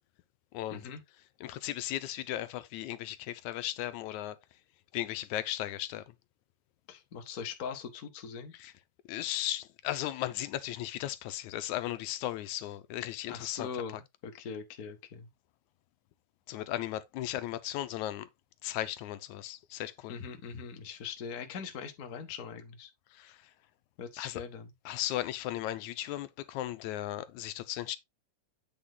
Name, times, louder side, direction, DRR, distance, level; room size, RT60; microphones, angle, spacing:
voice 1, 1.4-4.4 4.9-6.0 8.5-8.7 9.1-13.7 16.5-18.3 18.6-20.1 23.1-23.4 24.2-24.4 24.9-28.0, left 13 dB, 80° left, 2.0 m, -36 dB
voice 2, 6.9-8.5 13.3-14.0 14.2-15.3 20.1-22.9 24.0-24.7, left 6 dB, 55° left, 1.0 m, -41 dB
8.7 x 4.5 x 3.7 m
omnidirectional pair, 3.5 m